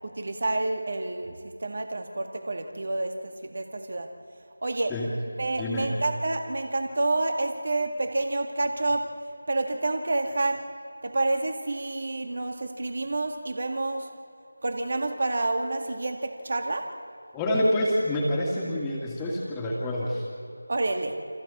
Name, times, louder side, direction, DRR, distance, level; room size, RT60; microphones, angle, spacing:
voice 1, 0.0-4.1 4.6-4.9 5.4-9.1 9.5-10.6 11.0-14.1 14.6-16.9 20.7-21.2, right 2 dB, 50° right, 5 dB, 2.0 m, -28 dB
voice 2, 5.6-5.9 17.3-20.3, left 1 dB, 10° left, -4 dB, 2.4 m, -27 dB
29.0 x 27.0 x 4.3 m, 2.6 s
figure-of-eight pair, 165°, 0 cm